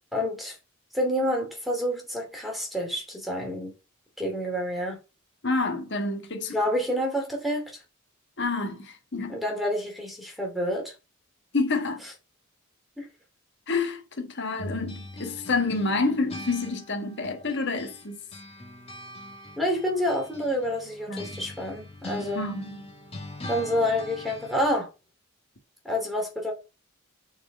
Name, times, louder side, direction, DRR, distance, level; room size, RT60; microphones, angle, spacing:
voice 1, 0.1-0.5 0.9-3.7 4.2-5.0 6.5-7.6 9.3-10.9 13.0-13.1 19.6-22.5 23.5-24.9 25.8-26.5, equal, ahead, 2.7 m, -28 dB
voice 2, 5.4-6.6 8.4-9.4 11.5-12.0 13.7-18.2 21.1-21.4 22.3-22.8, left 3 dB, 55° left, 1.5 m, -28 dB
sound 1, 14.6-18.0 18.3-24.7, left 2 dB, 30° left, 1.9 m, -41 dB
6.7 x 4.5 x 5.3 m
head